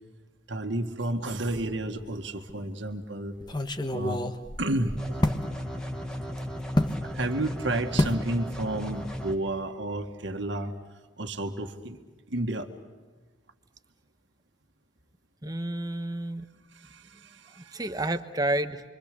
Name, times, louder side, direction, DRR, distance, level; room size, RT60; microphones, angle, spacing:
voice 1, 0.5-3.3 3.9-4.2 4.6-5.2 7.0-10.7 11.2-12.0 12.3-12.7 16.7-17.8, right 1 dB, 65° right, 4 dB, 1.9 m, -31 dB
sound 1, 1.5-2.1 2.5-2.6 3.4-5.5 6.8-7.0 8.0-8.3 8.6-8.9 9.2-9.3, left 1 dB, 20° left, 1.3 m, -28 dB
sound 2, 5.0-9.4, equal, 5° left, 2.0 m, -35 dB
voice 2, 15.4-16.5 17.6-18.8, right 1 dB, 20° right, 8 dB, 1.2 m, -30 dB
29.0 x 24.0 x 6.9 m, 1.4 s
head